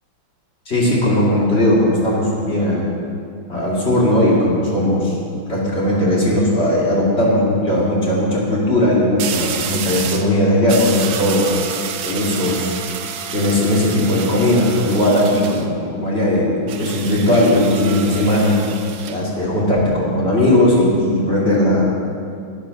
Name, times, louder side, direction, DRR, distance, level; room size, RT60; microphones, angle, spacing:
voice 1, 0.7-2.9 3.5-5.1 5.5-11.5 12.0-12.7 13.3-18.6 19.1-22.0, left 1 dB, 30° left, -5 dB, 2.8 m, -17 dB
sound 1, 6.0-6.4 9.2-10.3 10.7-15.7 16.7-19.2, right 7 dB, 65° right, 1.1 m, -29 dB
10.5 x 10.0 x 6.5 m, 2.5 s
omnidirectional pair, 2.2 m